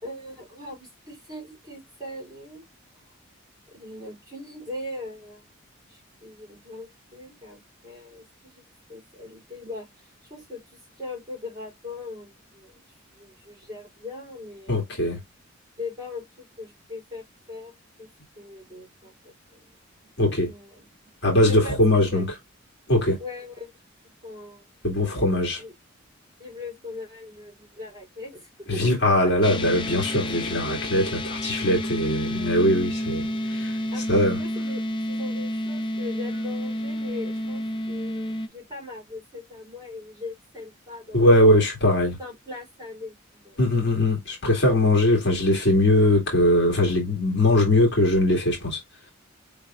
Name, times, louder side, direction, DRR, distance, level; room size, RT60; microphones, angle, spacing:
voice 1, 0.0-2.6 3.7-5.5 5.9-14.9 15.8-17.7 18.0-18.1 18.4-19.6 20.0-20.1 20.4-20.9 21.4-22.3 23.2-23.7 24.2-24.7 25.3-25.7 26.4-28.8 33.9-34.8 35.1-41.5 42.2-43.6, left 2 dB, 20° right, 3.6 m, -40 dB
voice 2, 14.7-15.2 20.2-20.5 21.2-22.3 22.9-23.2 24.8-25.6 28.7-33.8 34.1-34.4 41.1-42.2 43.6-48.8, left 1 dB, 55° left, 2.0 m, -21 dB
sound 1, 29.4-38.5, left 1 dB, 25° left, 0.4 m, -30 dB
4.9 x 3.4 x 2.4 m
head